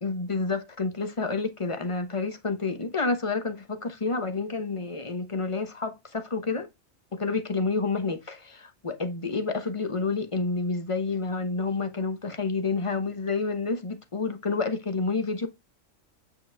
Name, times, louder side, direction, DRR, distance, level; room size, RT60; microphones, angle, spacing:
voice 1, 0.0-6.7 7.1-15.5, left 4 dB, 25° left, 1.0 m, -29 dB
8.5 x 5.2 x 3.5 m
omnidirectional pair, 1.3 m